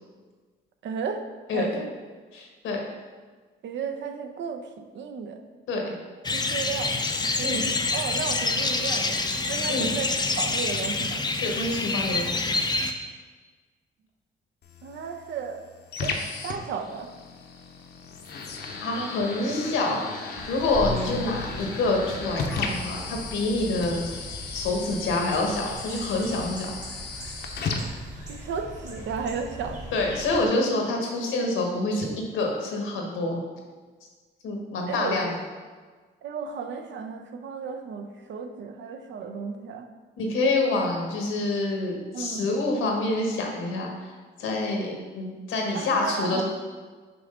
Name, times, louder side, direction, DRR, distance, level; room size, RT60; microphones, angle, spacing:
voice 1, 0.8-1.2 1.5-1.9 3.6-5.4 6.3-6.9 7.2-7.6 7.9-9.2 9.5-10.1 10.4-11.2 14.8-15.6 16.0-17.1 19.0-20.0 28.3-29.8 34.9-35.3 36.2-39.9 42.1-42.5 45.7-46.4, right 6 dB, 70° right, 6 dB, 0.6 m, -34 dB
voice 2, 2.3-2.8 5.7-5.8 7.4-7.6 9.7-9.9 11.4-12.5 18.8-24.1 24.5-26.7 29.9-32.1 32.3-33.4 34.4-35.4 40.2-44.1 44.4-46.4, left 2 dB, 80° left, 1 dB, 1.2 m, -27 dB
sound 1, 6.2-12.9, left 3 dB, 20° left, 0.5 m, -27 dB
sound 2, 14.6-28.6, left 4 dB, 55° left, 0.7 m, -36 dB
sound 3, 20.4-30.5, equal, 35° right, 1.4 m, -39 dB
6.1 x 3.0 x 5.3 m, 1.4 s
cardioid pair, 90°, 20 cm